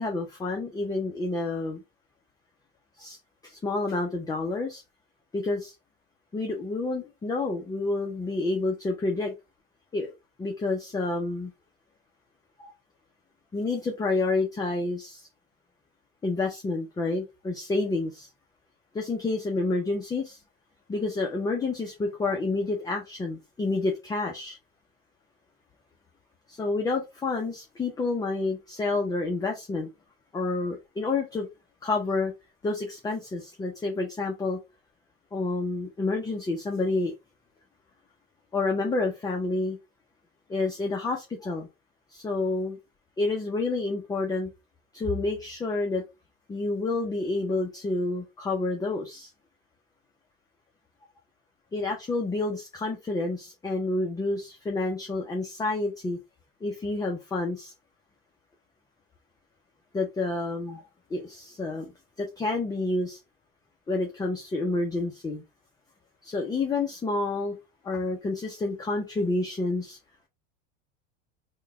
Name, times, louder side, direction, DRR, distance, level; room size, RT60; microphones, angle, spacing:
voice 1, 0.0-1.8 3.0-3.2 3.4-4.8 5.3-5.7 6.3-9.3 9.9-10.1 10.4-11.5 12.6-12.7 13.5-15.3 16.2-18.3 18.9-20.4 20.9-24.6 26.5-29.9 30.3-31.5 31.8-32.3 32.6-34.6 35.3-37.1 38.5-39.8 40.5-41.7 42.1-42.8 43.2-44.5 44.9-46.0 46.5-49.3 51.7-56.2 56.6-57.7 59.9-60.8 61.1-61.9 62.2-63.2 63.9-65.4 66.2-67.6 67.8-70.0, left 3 dB, 10° left, 2 dB, 0.6 m, -29 dB
3.7 x 2.2 x 3.3 m, 0.24 s
supercardioid pair, 115°, 31 cm